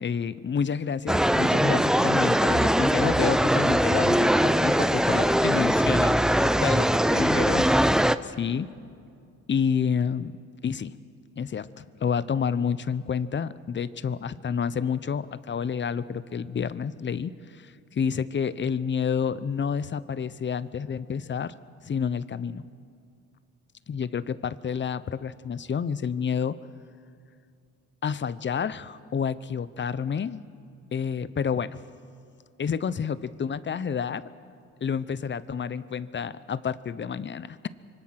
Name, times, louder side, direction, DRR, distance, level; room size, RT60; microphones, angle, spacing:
voice 1, 0.0-6.2 6.6-7.7 8.2-8.7 9.5-10.3 10.6-11.0 11.4-21.6 21.8-22.6 23.9-26.6 28.0-30.4 30.9-31.8 32.6-34.3 34.8-37.7, left 7 dB, 40° left, 16 dB, 0.8 m, -29 dB
sound 1, 1.1-8.1, equal, ahead, 0.6 m, -21 dB
26.0 x 24.5 x 5.9 m, 2.4 s
cardioid pair, 90°, 30 cm